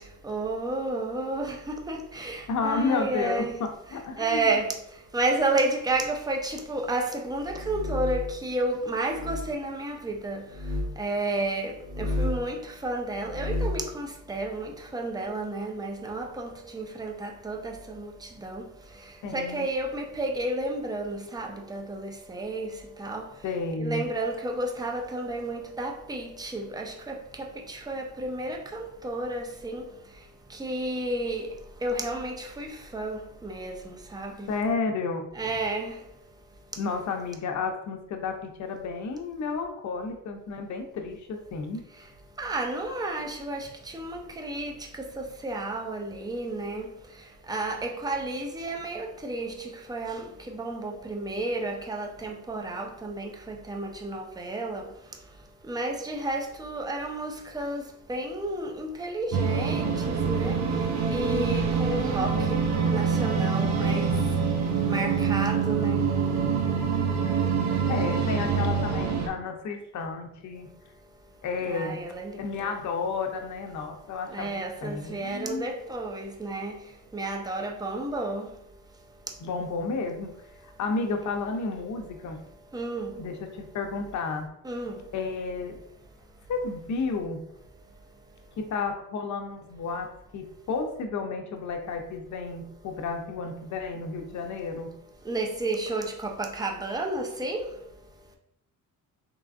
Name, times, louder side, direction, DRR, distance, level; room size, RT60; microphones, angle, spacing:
voice 1, 0.2-3.6 4.2-4.7 5.1-10.4 11.0-18.1 18.4-18.6 19.3-22.7 23.0-23.3 23.8-27.2 27.7-29.8 30.6-31.5 31.8-34.3 35.4-35.9 42.4-44.7 45.2-46.9 47.5-54.8 55.7-60.6 61.1-62.6 62.9-64.1 64.9-66.0 71.7-72.3 72.6-72.7 74.3-76.7 77.1-78.5 82.7-83.1 84.6-85.0 95.3-97.7, right 2 dB, 10° right, 0.5 m, -31 dB
voice 2, 2.5-4.6 19.2-19.7 23.4-24.0 34.5-35.3 36.8-41.8 67.9-70.7 71.4-72.0 72.4-75.6 79.4-80.4 80.6-82.4 83.2-84.5 85.1-85.8 86.5-87.5 88.6-95.0, left 4 dB, 60° left, 0.7 m, -32 dB
sound 1, 7.4-8.4 9.1-9.5 10.5-10.9 11.8-12.5 13.2-13.9, left 1 dB, 80° right, 1.2 m, -31 dB
sound 2, 59.3-69.3, right 5 dB, 55° right, 0.7 m, -25 dB
3.7 x 3.3 x 2.5 m
cardioid pair, 105°, 33 cm